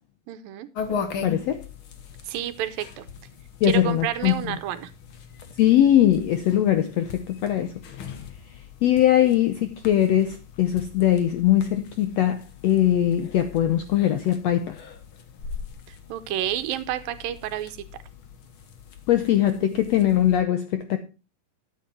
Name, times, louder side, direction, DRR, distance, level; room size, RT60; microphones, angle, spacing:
voice 1, 0.3-0.7 2.3-3.1 3.6-4.9 15.9-17.8, right 11 dB, 85° right, 2.6 m, -30 dB
sound 1, 0.7-20.4, left 6 dB, 55° left, 1.6 m, -40 dB
voice 2, 1.2-1.6 3.6-4.6 5.6-7.7 8.8-14.8 19.1-21.0, left 11 dB, 75° left, 1.5 m, -21 dB
12.5 x 8.3 x 4.3 m
omnidirectional pair, 4.0 m